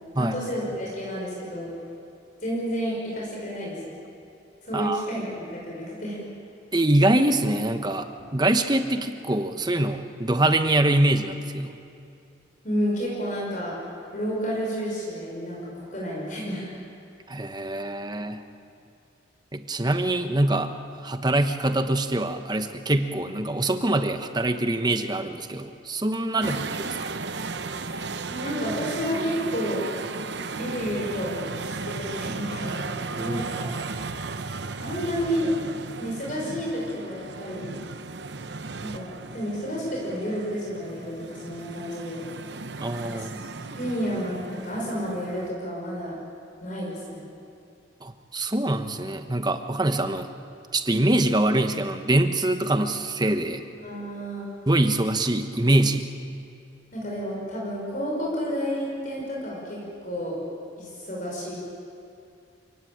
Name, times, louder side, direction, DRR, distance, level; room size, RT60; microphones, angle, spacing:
voice 1, 0.1-1.7 2.4-3.8 4.6-6.2 12.6-13.7 14.1-16.6 26.3-26.6 28.3-29.9 30.5-31.4 31.6-32.9 33.2-33.7 34.8-35.5 36.0-37.7 38.8-42.2 43.1-43.3 43.8-46.2 46.6-47.2 53.8-54.5 56.9-60.4 60.8-61.5, equal, 40° left, -4 dB, 5.9 m, -30 dB
voice 2, 4.7-5.1 6.7-11.8 17.3-18.4 19.5-20.7 21.0-26.9 33.2-33.7 42.8-43.4 48.0-50.3 50.7-53.6 54.7-56.1, right 1 dB, 20° right, 7 dB, 1.1 m, -24 dB
sound 1, 26.4-45.5, right 4 dB, 60° right, 0.9 m, -35 dB
28.5 x 17.5 x 8.8 m, 2.6 s
head